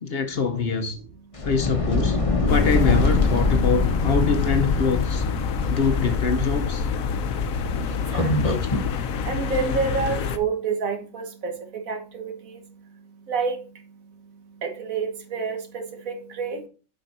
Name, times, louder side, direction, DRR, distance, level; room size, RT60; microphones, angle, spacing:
voice 1, 0.0-1.0 1.4-2.2 2.5-5.2 5.7-6.9, left 5 dB, 50° left, 0.9 m, -24 dB
sound 1, 1.3-8.9, left 3 dB, 25° left, 1.0 m, -24 dB
sound 2, 2.5-10.4, left 6 dB, 75° left, 1.1 m, -28 dB
voice 2, 8.1-8.6 9.3-11.5 11.9-12.3 13.3-13.6 14.6-16.6, right 5 dB, 75° right, 1.7 m, -28 dB
7.7 x 5.2 x 4.1 m
omnidirectional pair, 1.4 m